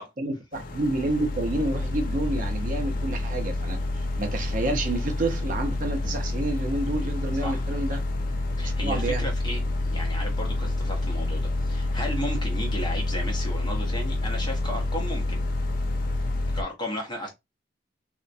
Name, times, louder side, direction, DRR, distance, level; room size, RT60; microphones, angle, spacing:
voice 1, 0.2-3.8 4.2-8.0 8.8-9.2, right 2 dB, 45° right, 0.4 m, -29 dB
sound 1, 0.5-16.6, left 2 dB, 45° left, 0.3 m, -28 dB
voice 2, 8.6-15.4 16.5-17.3, equal, 20° left, 0.7 m, -34 dB
2.4 x 2.1 x 2.5 m
head